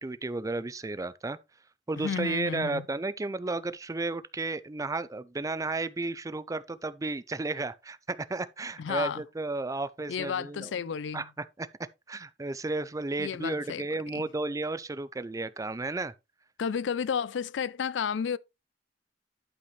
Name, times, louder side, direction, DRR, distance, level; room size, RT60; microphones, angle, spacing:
voice 1, 0.0-1.4 1.9-10.7 11.1-11.7 12.1-16.1, right 3 dB, 20° right, 0.4 m, -33 dB
voice 2, 2.0-2.9 8.8-9.2 10.1-11.3 13.2-14.3 16.6-18.4, left 7 dB, 75° left, 0.4 m, -32 dB
11.5 x 5.1 x 3.1 m
head